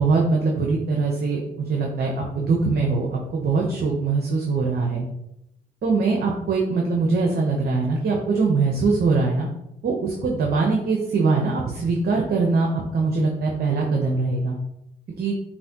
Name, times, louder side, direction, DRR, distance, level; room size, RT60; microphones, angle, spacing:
voice 1, 0.0-5.1 5.8-9.5 9.8-14.6 15.2-15.3, right 4 dB, 60° right, 0 dB, 0.9 m, -22 dB
6.9 x 2.6 x 2.9 m, 0.82 s
cardioid pair, 70°, 19 cm